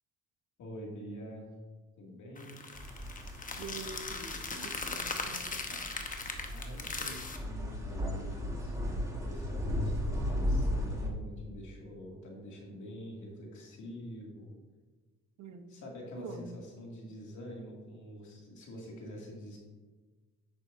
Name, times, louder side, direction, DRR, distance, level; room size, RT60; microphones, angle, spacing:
voice 1, 0.6-1.5 2.0-2.7 6.5-14.5 15.7-19.6, equal, 75° left, -2 dB, 2.5 m, -46 dB
sound 1, 2.4-7.4, left 3 dB, 25° left, 1.1 m, -39 dB
sound 2, 2.7-11.1, left 1 dB, 10° right, 1.7 m, -36 dB
voice 2, 3.6-5.9 15.4-15.8 16.2-16.6, right 4 dB, 70° right, 7 dB, 1.0 m, -46 dB
10.5 x 8.0 x 2.7 m, 1.3 s
cardioid pair, 90°, 30 cm